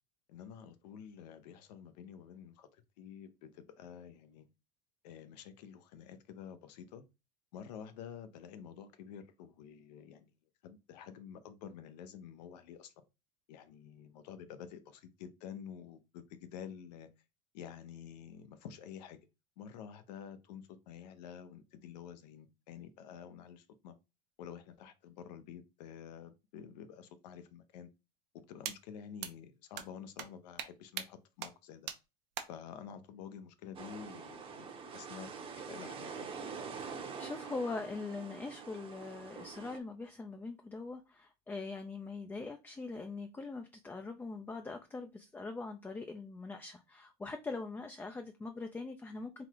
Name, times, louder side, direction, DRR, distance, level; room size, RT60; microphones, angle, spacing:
voice 1, 0.3-4.5 5.0-7.0 7.5-10.3 10.6-13.0 13.5-17.1 17.5-19.2 19.6-23.9 24.4-27.9 28.3-31.9 32.5-34.7 34.9-36.4, left 8 dB, 80° left, 0.8 m, -49 dB
sound 1, 28.7-28.8 29.2-29.3 29.8-29.9 30.2-30.3 30.6-30.7 31.0-31.1 31.4-31.5 31.9-32.0 32.4-32.5, right 10 dB, 60° right, 0.7 m, -39 dB
sound 2, 33.7-39.8, right 5 dB, 25° right, 0.8 m, -45 dB
voice 2, 36.8-49.4, left 3 dB, 10° left, 0.4 m, -42 dB
3.9 x 2.4 x 4.5 m
supercardioid pair, 125°, 21 cm